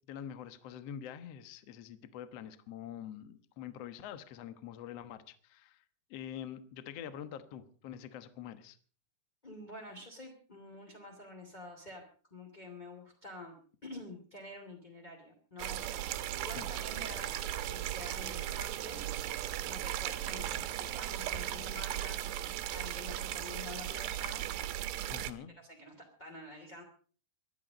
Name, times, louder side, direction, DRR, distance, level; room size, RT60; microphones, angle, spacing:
voice 1, 0.1-5.8 6.1-8.8 16.5-16.7 25.1-25.5, left 9 dB, 80° left, 11 dB, 1.4 m, -45 dB
voice 2, 9.4-12.0 12.3-13.6 13.8-19.0 19.6-24.4 24.9-25.0 25.6-26.8, left 2 dB, 15° left, 1 dB, 2.1 m, -48 dB
sound 1, 15.6-25.3, right 12 dB, 85° right, 3.2 m, -37 dB
24.5 x 10.5 x 5.2 m, 0.42 s
omnidirectional pair, 4.8 m